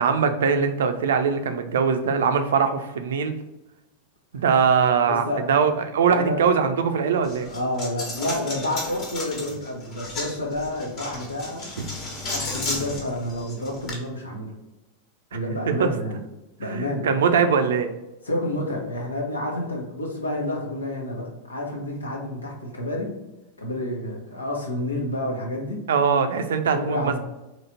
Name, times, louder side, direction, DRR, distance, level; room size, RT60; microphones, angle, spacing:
voice 1, 0.0-3.3 4.3-7.5 15.7-15.9 16.6-17.9 25.9-27.2, right 6 dB, 60° right, 7 dB, 0.5 m, -21 dB
voice 2, 5.0-5.4 6.0-6.4 7.5-11.7 12.3-14.5 15.3-16.2 16.6-17.1 18.2-23.1 23.6-25.8 26.7-27.2, left 1 dB, 75° left, 0 dB, 1.1 m, -29 dB
Coin (dropping), 7.2-13.9, left 2 dB, 35° left, 1.3 m, -34 dB
4.0 x 3.1 x 4.2 m, 0.98 s
figure-of-eight pair, 90°, 0 cm